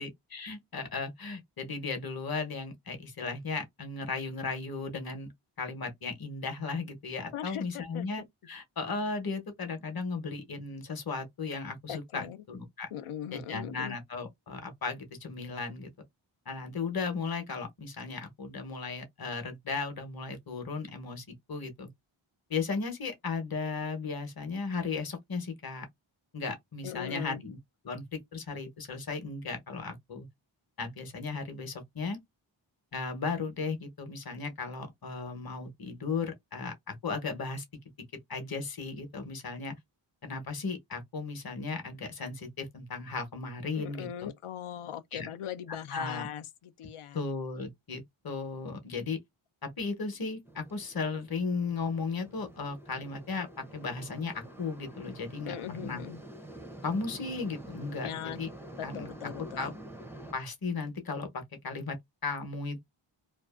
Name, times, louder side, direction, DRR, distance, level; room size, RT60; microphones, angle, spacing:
voice 1, 0.0-5.3 5.6-12.9 13.3-15.9 16.5-21.9 22.5-25.9 26.3-27.6 27.8-30.3 30.8-32.2 32.9-37.6 38.3-39.7 40.2-44.3 45.1-45.3 45.9-46.3 47.1-49.2 49.6-56.0 56.8-58.5 58.8-59.1 59.6-59.7 60.3-62.0 62.2-62.8, left 4 dB, 45° left, 0.9 m, -36 dB
voice 2, 7.3-8.3 11.9-12.4 12.9-14.0 26.8-27.4 43.7-47.2 55.4-56.2 58.0-58.4 58.8-59.7, left 10 dB, 80° left, 0.5 m, -40 dB
sound 1, 50.5-60.3, right 1 dB, 5° right, 0.5 m, -47 dB
2.6 x 2.3 x 2.3 m
wide cardioid pair, 100°, 50 cm